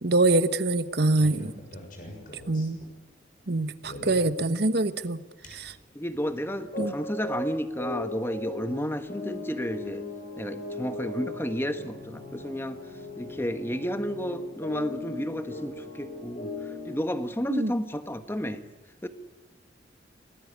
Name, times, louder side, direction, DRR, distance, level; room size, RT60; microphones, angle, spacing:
voice 1, 0.0-1.5 2.5-2.8 3.5-5.8 6.8-6.9 17.5-17.7, right 2 dB, 60° right, 12 dB, 1.2 m, -25 dB
sound 1, 1.0-2.9 3.8-4.4 5.4-5.7 6.0-6.2 6.7-17.0, left 2 dB, 50° left, 6.7 m, -38 dB
voice 2, 5.9-10.0 10.4-12.8 13.2-16.5 16.8-18.6 19.0-19.1, equal, 15° left, 9 dB, 1.4 m, -31 dB
27.0 x 19.5 x 9.7 m, 1.2 s
head